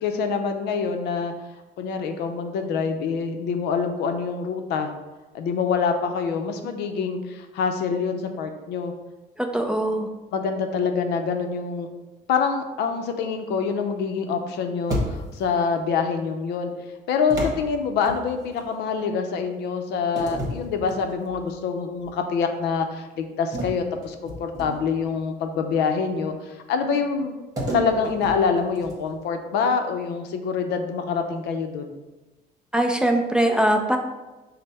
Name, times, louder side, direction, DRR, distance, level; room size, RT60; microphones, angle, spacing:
voice 1, 0.0-1.3 1.8-4.9 5.3-8.9 10.3-11.9 12.3-16.7 17.1-27.4 27.7-31.9, left 5 dB, 80° left, 5 dB, 0.5 m, -26 dB
voice 2, 9.4-10.1 32.7-34.0, right 1 dB, 5° right, 2 dB, 0.4 m, -21 dB
sound 1, 14.9-15.5 17.3-18.6 20.1-21.5 22.0-22.2 23.5-25.0 27.6-29.2, equal, 20° right, 1.3 m, -32 dB
5.3 x 2.0 x 4.1 m, 1.1 s
cardioid pair, 110°, 17 cm